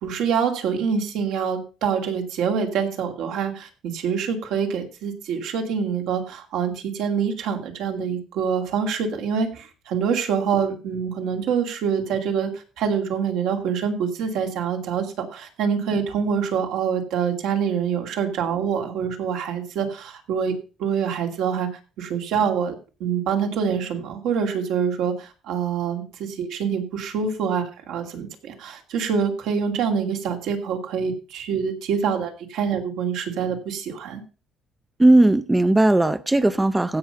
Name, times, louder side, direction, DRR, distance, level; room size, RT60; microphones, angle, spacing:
voice 1, 0.0-20.5 20.8-21.7 22.0-22.7 23.0-34.2, right 6 dB, 80° right, 2.5 m, -25 dB
voice 2, 35.0-37.0, right 2 dB, 10° right, 0.4 m, -17 dB
15.5 x 5.5 x 5.7 m
cardioid pair, 135°, 0 cm